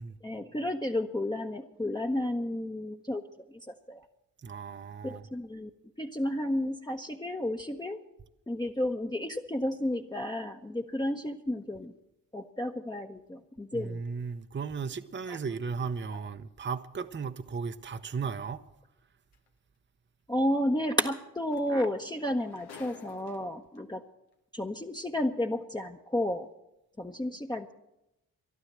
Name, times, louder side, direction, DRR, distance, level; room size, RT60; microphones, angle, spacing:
voice 1, 0.2-3.2 3.7-4.0 5.0-5.7 6.0-8.0 8.5-11.9 12.3-14.0 15.3-15.4 20.3-24.0 24.5-26.5 27.0-27.7, left 1 dB, 10° left, 0.9 m, -32 dB
voice 2, 4.4-5.2 13.7-18.6, right 5 dB, 30° right, 0.7 m, -35 dB
sound 1, 19.3-19.5 21.2-21.3 21.5-23.8 24.7-24.8, left 6 dB, 90° left, 1.1 m, -52 dB
13.0 x 11.5 x 7.4 m
supercardioid pair, 40°, 38 cm